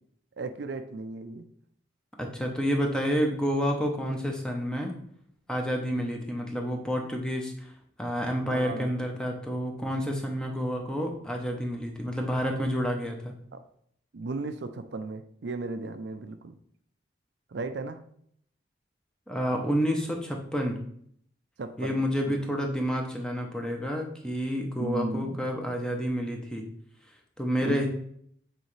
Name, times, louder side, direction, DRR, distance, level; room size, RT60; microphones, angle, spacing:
voice 1, 0.4-1.5 8.5-8.9 13.5-13.6 14.1-16.6 17.5-18.0 21.6-22.4 24.8-25.5 27.6-27.9, right 3 dB, 70° right, 0.5 m, -35 dB
voice 2, 2.2-5.0 5.5-7.5 8.0-13.3 19.3-20.8 21.8-26.7 27.4-27.9, equal, 5° left, 0.8 m, -29 dB
7.9 x 4.1 x 3.2 m
head